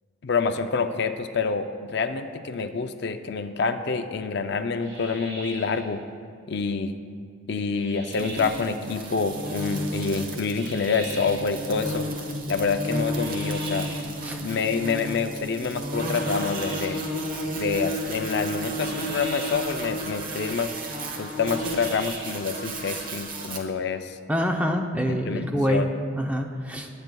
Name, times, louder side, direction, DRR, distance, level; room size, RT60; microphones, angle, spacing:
voice 1, 0.2-6.0 6.5-7.0 7.5-12.1 12.5-13.9 14.4-17.0 17.5-20.7 21.2-24.2 25.1-25.9, left 5 dB, 55° left, 8 dB, 0.4 m, -27 dB
sound 1, 4.8-5.9 7.7-8.7 10.5-11.5 13.1-14.2 16.1-17.1 18.7-19.8 21.4-22.5, right 2 dB, 85° right, 2.5 m, -41 dB
sound 2, 8.1-23.6, equal, 45° right, 1.0 m, -32 dB
voice 2, 24.3-25.9 26.2-26.9, equal, 5° right, 3 dB, 0.5 m, -25 dB
19.5 x 9.1 x 2.3 m, 2.3 s
head